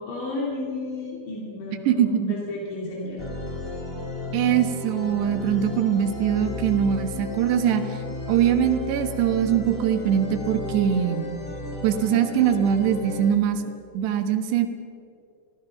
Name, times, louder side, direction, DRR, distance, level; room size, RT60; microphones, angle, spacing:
voice 1, 0.0-3.3, left 2 dB, 80° left, -3 dB, 5.1 m, -32 dB
voice 2, 1.9-2.4 4.3-8.0 8.3-11.3 11.8-13.6 13.9-14.7, right 9 dB, 75° right, 8 dB, 3.4 m, -22 dB
sound 1, 3.2-13.3, left 2 dB, 10° left, 5.0 m, -33 dB
29.5 x 21.0 x 5.9 m, 2.4 s
omnidirectional pair, 5.2 m